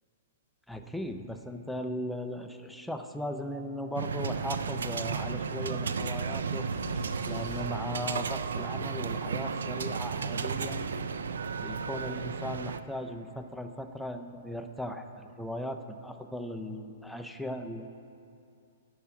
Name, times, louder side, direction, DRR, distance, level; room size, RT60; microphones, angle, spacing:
voice 1, 0.7-6.7 7.3-10.9 11.6-17.9, left 1 dB, ahead, 5 dB, 0.5 m, -38 dB
sound 1, 4.0-12.8, right 5 dB, 80° right, 0.3 m, -33 dB
sound 2, 6.7-10.4, right 1 dB, 45° right, 2.0 m, -46 dB
9.8 x 4.7 x 6.0 m, 2.5 s
hypercardioid pair, 130°, 0 cm